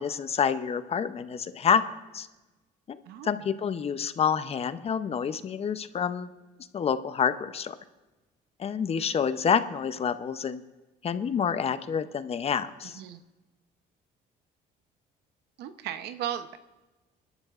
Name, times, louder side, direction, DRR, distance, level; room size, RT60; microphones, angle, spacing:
voice 1, 0.0-1.8 2.1-2.3 3.2-6.3 6.7-7.7 8.6-10.6 11.0-13.0, left 7 dB, 35° left, 12 dB, 0.6 m, -28 dB
voice 2, 15.6-16.6, right 10 dB, 80° right, 10 dB, 0.8 m, -35 dB
26.0 x 12.0 x 2.5 m, 1.1 s
cardioid pair, 110°, 17 cm